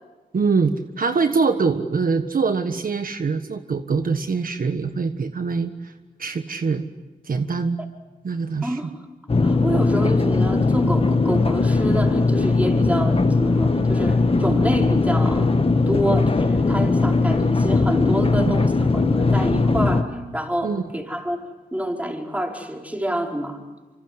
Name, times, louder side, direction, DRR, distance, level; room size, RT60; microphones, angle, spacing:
voice 1, 0.3-5.9 6.2-6.9 7.2-7.8 8.2-8.8 18.3-18.5 20.6-20.8, right 4 dB, 65° right, 7 dB, 1.5 m, -23 dB
sound 1, 9.3-20.0, left 3 dB, 35° left, 1.5 m, -19 dB
voice 2, 9.4-15.5 15.9-21.5 21.7-23.6, equal, 10° right, 2 dB, 4.8 m, -27 dB
26.0 x 25.5 x 8.1 m, 1.2 s
cardioid pair, 70°, 16 cm